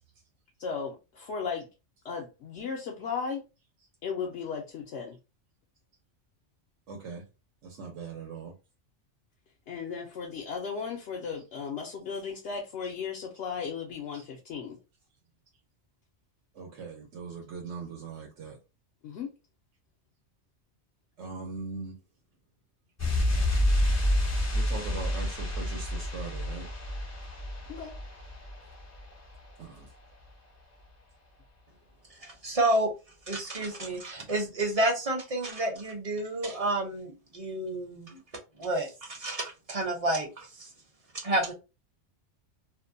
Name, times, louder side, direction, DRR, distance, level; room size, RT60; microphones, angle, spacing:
voice 1, 0.6-1.7 2.0-3.4 4.0-5.2 9.7-14.8 19.0-19.3 27.7-27.9, left 6 dB, 70° left, 0.8 m, -36 dB
voice 2, 6.9-7.2 7.6-8.5 14.1-14.2 16.5-18.6 21.2-21.9 24.5-26.7 29.6-29.9, right 4 dB, 80° right, 1.0 m, -40 dB
sound 1, 23.0-29.5 29.8-29.9, left 1 dB, 25° left, 0.3 m, -29 dB
voice 3, 32.1-32.9 33.3-38.2 38.6-40.7 41.2-41.5, right 1 dB, 35° right, 0.7 m, -30 dB
2.6 x 2.1 x 2.6 m
omnidirectional pair, 1.3 m